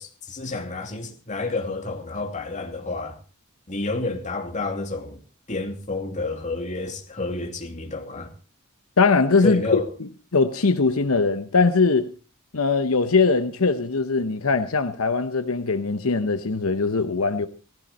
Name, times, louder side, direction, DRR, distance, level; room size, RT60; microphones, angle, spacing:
voice 1, 0.0-3.2 3.7-5.2 5.5-8.3 9.4-9.9, left 3 dB, 35° left, 2.6 m, -29 dB
voice 2, 9.0-9.8 10.3-12.1 12.5-17.5, left 4 dB, 80° left, 0.9 m, -21 dB
17.0 x 14.5 x 4.2 m
head